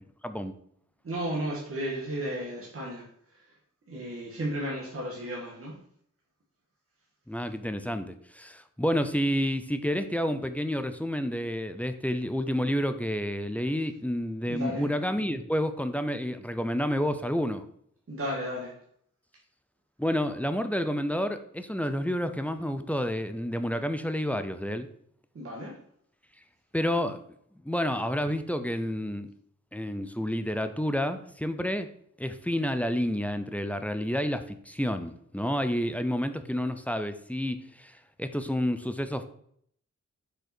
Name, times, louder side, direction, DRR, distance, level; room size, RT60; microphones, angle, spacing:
voice 1, 1.0-3.1 3.9-5.8 14.5-14.9 18.1-18.7 25.3-25.8, equal, 45° right, -4 dB, 1.7 m, -33 dB
voice 2, 7.3-17.6 20.0-24.9 26.7-27.2 27.6-29.3 29.7-31.9 32.2-39.2, equal, 5° left, 9 dB, 0.5 m, -29 dB
6.4 x 5.1 x 4.4 m, 0.66 s
wide cardioid pair, 140°, 31 cm